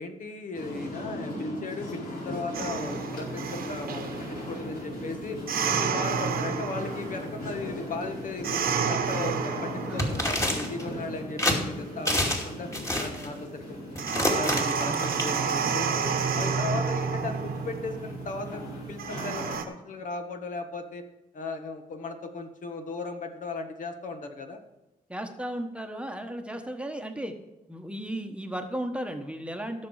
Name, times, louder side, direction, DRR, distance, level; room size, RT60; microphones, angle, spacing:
voice 1, 0.0-12.7 13.0-21.0 21.3-24.6, left 3 dB, 60° left, 5 dB, 1.6 m, -37 dB
sound 1, 0.5-19.5, left 1 dB, 80° left, 4.7 m, -39 dB
sound 2, 2.5-19.6, right 6 dB, 80° right, 1.2 m, -31 dB
sound 3, 10.0-10.8 11.4-11.6 12.1-12.5 12.7-13.3 14.0-15.2, left 1 dB, 20° left, 2.4 m, -27 dB
voice 2, 25.1-27.3 27.7-29.9, right 1 dB, 5° right, 4 dB, 1.2 m, -35 dB
16.0 x 6.8 x 4.9 m, 1.0 s
cardioid pair, 100°, 15 cm